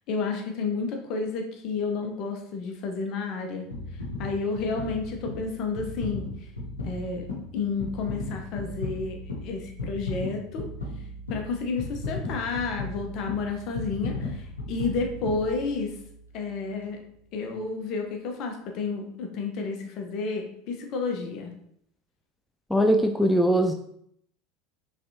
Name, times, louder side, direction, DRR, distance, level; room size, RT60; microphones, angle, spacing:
voice 1, 0.1-3.7 4.2-6.3 6.8-7.3 7.5-9.2 9.4-10.7 11.3-15.9 16.3-17.0 17.3-21.5, left 4 dB, 50° left, 3 dB, 0.9 m, -31 dB
sound 1, 3.7-16.1 16.7-16.8, left 2 dB, 85° left, 0.9 m, -36 dB
voice 2, 22.7-23.7, equal, 5° left, 4 dB, 0.3 m, -21 dB
5.2 x 3.3 x 2.7 m, 0.70 s
figure-of-eight pair, 75°, 0 cm